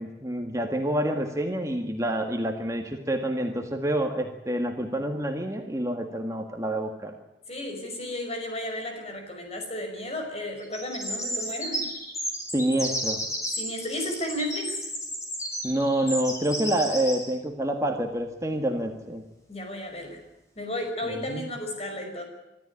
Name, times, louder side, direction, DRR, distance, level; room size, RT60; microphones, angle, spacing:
voice 1, 0.0-7.1 12.5-13.2 15.6-19.2 21.3-21.5, right 1 dB, 15° right, 3 dB, 1.7 m, -27 dB
voice 2, 7.5-11.9 13.5-14.8 19.5-20.2 20.6-22.2, left 1 dB, 35° left, 3 dB, 5.6 m, -33 dB
sound 1, 10.6-17.3, equal, 15° left, 5.8 m, -33 dB
25.0 x 13.5 x 9.8 m, 0.98 s
head